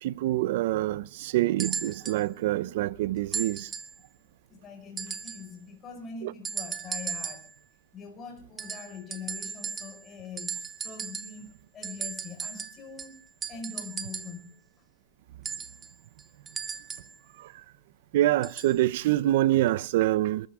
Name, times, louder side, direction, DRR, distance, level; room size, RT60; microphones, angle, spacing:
voice 1, 0.0-3.7 6.2-6.3 17.4-17.6 18.1-20.5, right 15 dB, 60° right, 0.7 m, -26 dB
sound 1, 1.6-2.2 3.3-4.0 5.0-5.5 6.4-7.5 8.6-10.1 10.4-11.4 11.8-14.4 15.4-17.2 18.4-18.8 19.7-19.8, right 6 dB, 20° right, 1.2 m, -36 dB
voice 2, 4.5-7.5 7.9-11.5 11.7-13.2 13.5-14.6, left 5 dB, 25° left, 5.4 m, -43 dB
27.5 x 13.5 x 3.7 m
hypercardioid pair, 140°, 0 cm